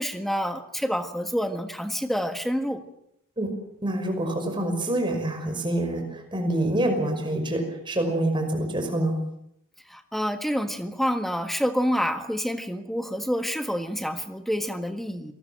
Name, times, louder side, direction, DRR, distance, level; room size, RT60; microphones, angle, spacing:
voice 1, 0.0-2.8 9.9-15.3, equal, ahead, 7 dB, 1.6 m, -28 dB
voice 2, 3.8-9.2, right 1 dB, 25° right, 4 dB, 5.6 m, -26 dB
27.5 x 19.5 x 7.7 m, 0.76 s
head